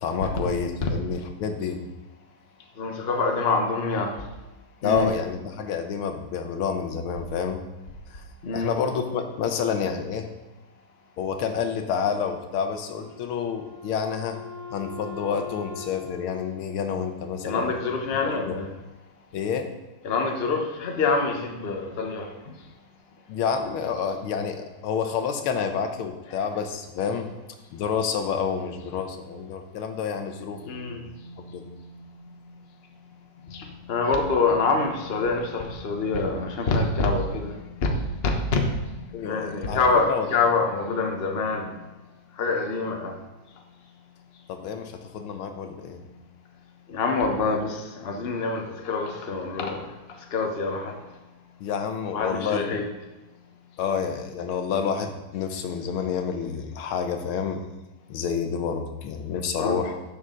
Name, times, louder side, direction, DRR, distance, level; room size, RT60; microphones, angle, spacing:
voice 1, 0.0-1.8 4.8-7.6 8.1-8.2 8.5-10.3 11.2-14.4 14.7-17.7 18.2-18.6 19.3-19.7 23.3-27.3 27.7-31.0 31.5-31.7 39.1-40.3 44.5-46.0 51.6-52.8 53.8-57.7 58.1-60.0, left 6 dB, 85° left, 6 dB, 1.8 m, -29 dB
voice 2, 2.8-4.1 4.8-5.1 8.4-8.7 17.4-18.7 20.0-22.3 30.6-31.0 33.5-37.5 37.8-37.9 38.2-38.7 39.2-41.7 42.4-43.1 46.9-49.8 50.3-50.9 52.1-52.8 59.6-59.8, left 3 dB, 35° left, 2 dB, 1.1 m, -25 dB
Wind instrument woodwind instrument, 13.0-17.5, left 6 dB, 80° right, 3.1 m, -42 dB
11.0 x 7.1 x 3.8 m, 1.1 s
omnidirectional pair, 2.3 m